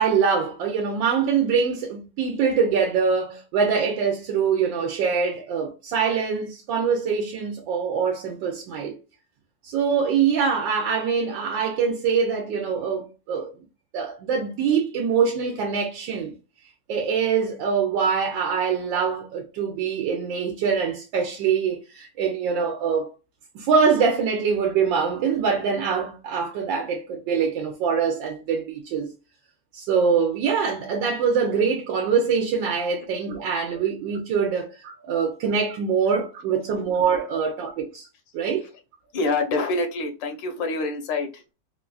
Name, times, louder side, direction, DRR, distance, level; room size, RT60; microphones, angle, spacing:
voice 1, 0.0-9.0 9.6-13.5 13.9-16.3 16.9-23.1 23.5-29.1 29.7-38.1 38.3-38.7, right 6 dB, 85° right, 1.4 m, -24 dB
voice 2, 39.1-41.5, left 3 dB, 80° left, 1.4 m, -26 dB
4.3 x 2.3 x 2.3 m
omnidirectional pair, 2.0 m